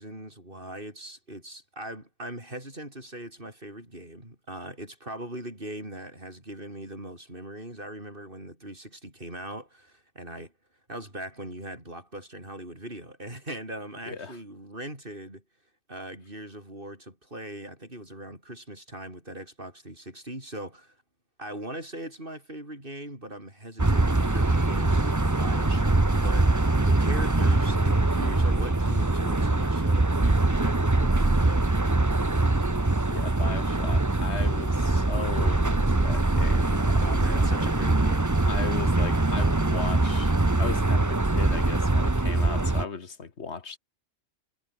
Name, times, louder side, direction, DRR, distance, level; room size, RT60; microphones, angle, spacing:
voice 1, 0.0-10.5 10.9-15.4 15.9-21.0 21.4-31.7 37.0-38.3, right 1 dB, 50° right, 7.8 m, -40 dB
voice 2, 14.1-14.4 33.1-37.8 38.5-43.8, left 5 dB, 70° left, 2.1 m, -37 dB
sound 1, 23.8-42.9, right 2 dB, 15° right, 1.1 m, -23 dB
omnidirectional pair, 1.2 m